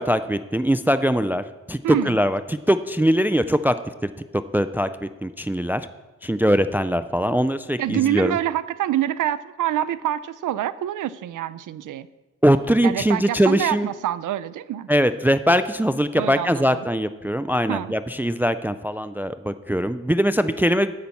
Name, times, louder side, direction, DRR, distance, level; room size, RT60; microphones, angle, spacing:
voice 1, 0.0-1.8 2.1-2.4 2.7-3.8 4.5-4.9 5.2-5.8 6.2-8.4 12.4-13.9 14.9-20.9, equal, 5° right, 12 dB, 0.4 m, -21 dB
voice 2, 1.8-2.2 7.8-12.1 12.8-14.9 16.2-16.9 17.7-17.9, right 12 dB, 85° right, 16 dB, 0.6 m, -26 dB
9.4 x 8.8 x 7.1 m, 1.2 s
cardioid pair, 110°, 30 cm